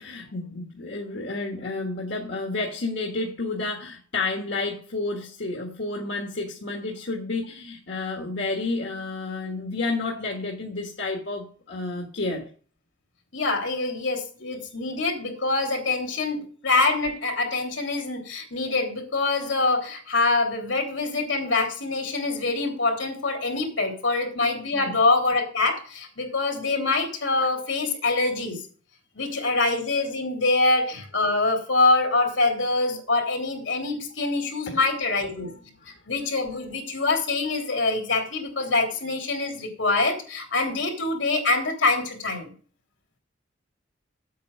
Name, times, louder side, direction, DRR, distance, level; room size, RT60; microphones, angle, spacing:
voice 1, 0.0-12.5 24.7-24.9 34.7-34.8 35.4-35.5 35.8-35.9, left 3 dB, 65° left, 0 dB, 1.6 m, -30 dB
voice 2, 13.3-28.6 29.1-35.5 36.1-42.5, left 3 dB, 85° left, 1 dB, 3.3 m, -25 dB
8.5 x 8.4 x 5.5 m, 0.42 s
head